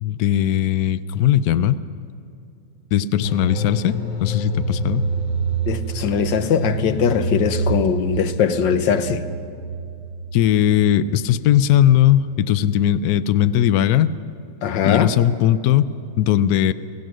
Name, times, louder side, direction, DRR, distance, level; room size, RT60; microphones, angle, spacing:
voice 1, 0.0-1.8 2.9-5.1 10.3-14.1 14.8-15.9 16.2-16.7, left 11 dB, 90° left, 14 dB, 0.8 m, -18 dB
sound 1, 3.2-13.1 13.4-13.5, right 2 dB, 30° left, 1.0 m, -27 dB
voice 2, 5.7-9.2 14.6-15.1, left 7 dB, 65° left, 10 dB, 1.5 m, -20 dB
25.5 x 17.0 x 6.2 m, 2.5 s
omnidirectional pair, 2.3 m